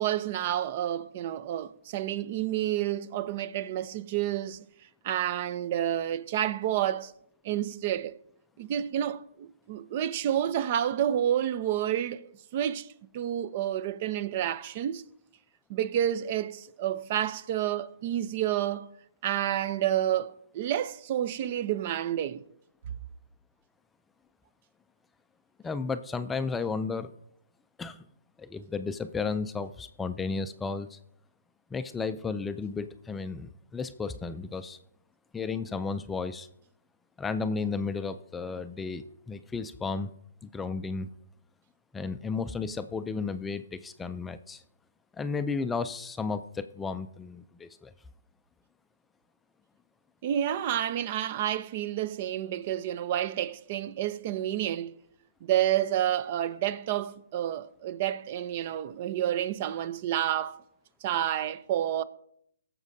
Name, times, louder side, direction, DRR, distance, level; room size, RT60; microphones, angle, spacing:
voice 1, 0.0-4.6 5.0-7.1 7.4-8.1 8.6-12.9 13.1-15.0 15.7-18.9 19.2-22.4 50.2-54.9 55.4-60.6 61.0-62.0, right 11 dB, 40° right, 0.6 m, -29 dB
voice 2, 25.6-27.1 27.8-28.0 28.4-31.0 31.7-34.8 35.3-36.5 37.2-40.1 40.5-41.1 41.9-44.6 45.2-47.9, left 4 dB, 10° left, 0.4 m, -33 dB
17.0 x 7.3 x 2.7 m
hypercardioid pair, 145°, 0 cm